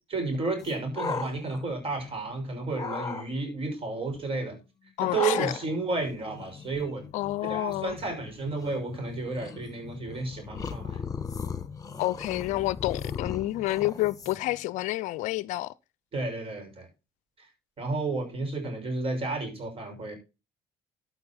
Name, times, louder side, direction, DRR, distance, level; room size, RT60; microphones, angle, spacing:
voice 1, 0.1-4.6 5.0-7.0 7.4-11.0 16.1-16.9 17.4-17.5 17.8-20.2, right 3 dB, 40° right, 6.0 m, -32 dB
sound 1, 0.6-2.3 2.7-3.2 5.1-14.6, left 5 dB, 25° left, 1.6 m, -37 dB
voice 2, 5.0-5.5 7.1-8.0 12.0-15.7, left 17 dB, 65° left, 0.5 m, -29 dB
13.0 x 6.2 x 4.3 m
hypercardioid pair, 60°, 14 cm